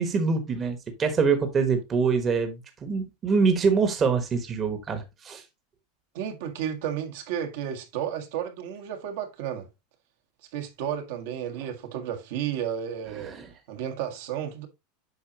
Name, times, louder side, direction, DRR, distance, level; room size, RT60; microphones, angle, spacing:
voice 1, 0.0-5.4 13.2-13.5, right 5 dB, 20° right, 1.1 m, -25 dB
voice 2, 6.1-9.7 10.5-13.3 13.7-14.7, right 9 dB, 65° right, 1.5 m, -32 dB
8.1 x 5.6 x 2.8 m
supercardioid pair, 160°, 0 cm